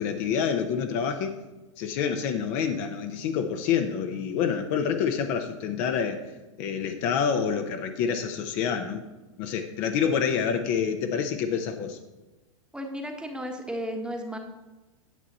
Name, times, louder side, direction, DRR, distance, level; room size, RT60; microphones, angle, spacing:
voice 1, 0.0-1.3 1.8-6.2 6.6-9.0 9.4-12.0, left 7 dB, 45° left, 6 dB, 0.9 m, -27 dB
voice 2, 12.7-14.4, equal, 5° right, 3 dB, 1.2 m, -34 dB
9.3 x 7.7 x 4.2 m, 1.1 s
hypercardioid pair, 100°, 17 cm